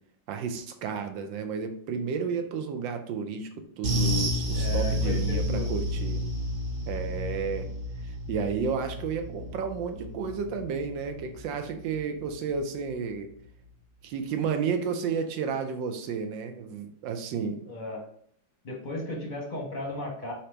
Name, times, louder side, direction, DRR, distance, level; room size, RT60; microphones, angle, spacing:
voice 1, 0.3-3.5 3.8-6.2 6.9-7.7 8.0-13.3 14.0-17.7, right 6 dB, 80° right, 6 dB, 1.3 m, -32 dB
sound 1, 3.8-12.5 12.8-13.0 13.4-13.5, left 1 dB, 55° right, 0.6 m, -31 dB
voice 2, 4.5-5.7 17.6-18.0 18.6-20.3, left 2 dB, 35° left, -1 dB, 0.8 m, -35 dB
4.9 x 2.9 x 3.3 m, 0.64 s
omnidirectional pair, 2.1 m